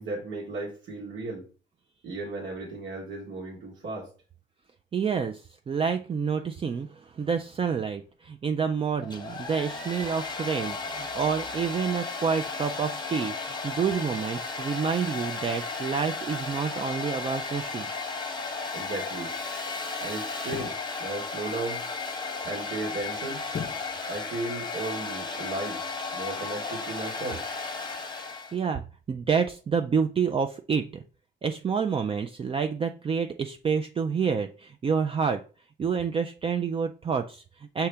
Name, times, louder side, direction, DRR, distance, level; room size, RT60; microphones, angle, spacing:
voice 1, 0.0-1.5 2.0-4.1 18.7-19.3 20.0-21.8 22.4-23.5 24.1-25.8 26.1-27.4, right 2 dB, 70° right, -4 dB, 1.4 m, -35 dB
voice 2, 4.9-17.9 28.5-28.8 29.1-31.0 31.4-35.4 35.8-37.9, right 6 dB, 30° right, 5 dB, 0.3 m, -28 dB
Domestic sounds home sounds, 9.0-28.6, left 4 dB, 20° left, 0.9 m, -34 dB
sound 1, 18.5-18.7 20.4-20.9 23.5-24.0 24.4-24.5, left 7 dB, 45° left, 0.5 m, -37 dB
5.6 x 2.9 x 3.3 m, 0.37 s
cardioid pair, 90°, 20 cm